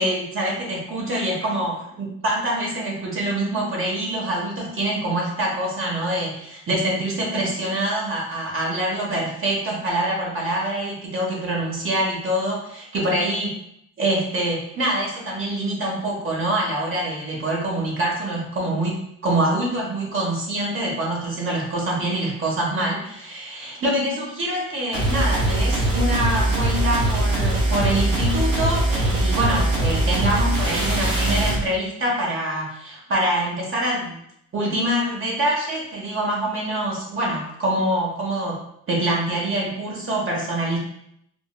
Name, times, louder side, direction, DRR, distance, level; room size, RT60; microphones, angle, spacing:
voice 1, 0.0-13.5 14.0-34.2 34.5-38.6 38.9-40.8, right 1 dB, 45° right, -3 dB, 1.1 m, -25 dB
sound 1, 24.9-31.6, right 1 dB, 75° right, 1.3 m, -21 dB
3.6 x 2.4 x 2.2 m, 0.73 s
cardioid pair, 90°, 30 cm